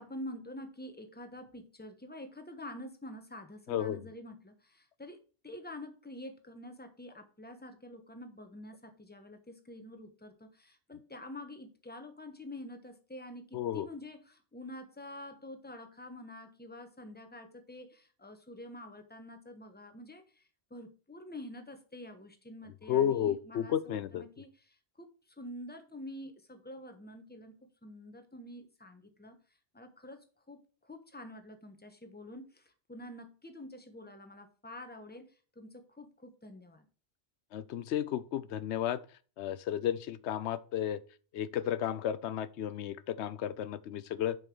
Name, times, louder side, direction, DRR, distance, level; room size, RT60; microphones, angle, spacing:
voice 1, 0.0-5.2 5.4-25.1 25.4-29.4 29.7-35.3 35.5-36.8, left 1 dB, 10° left, 1.1 m, -47 dB
voice 2, 3.7-4.0 13.5-13.9 22.9-24.2 37.5-39.0 39.4-41.0 41.3-44.4, left 10 dB, 90° left, 0.9 m, -33 dB
6.9 x 5.6 x 6.1 m
omnidirectional pair, 1.1 m